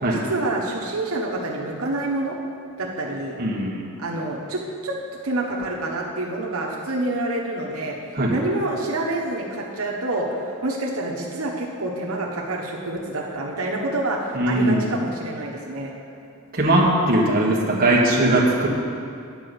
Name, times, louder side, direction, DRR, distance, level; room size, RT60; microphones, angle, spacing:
voice 1, 0.1-2.4 2.8-3.4 4.0-4.9 5.2-8.0 8.3-15.9, right 2 dB, 90° right, -2 dB, 1.2 m, -27 dB
voice 2, 3.4-3.8 8.1-8.4 14.3-14.8 16.5-18.7, right 1 dB, 40° right, -3 dB, 1.5 m, -19 dB
9.9 x 5.5 x 8.0 m, 2.4 s
head